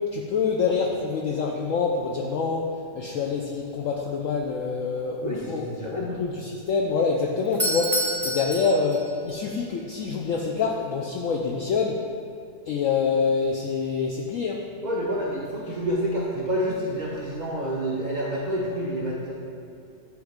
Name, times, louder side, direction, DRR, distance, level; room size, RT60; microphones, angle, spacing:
voice 1, 0.0-12.0 12.7-14.6, left 5 dB, 80° left, -1 dB, 0.7 m, -26 dB
voice 2, 5.2-6.2 14.8-19.3, equal, 85° right, -5 dB, 0.4 m, -28 dB
Doorbell, 7.4-9.4, equal, ahead, 0.6 m, -28 dB
8.6 x 3.1 x 5.0 m, 2.6 s
omnidirectional pair, 1.9 m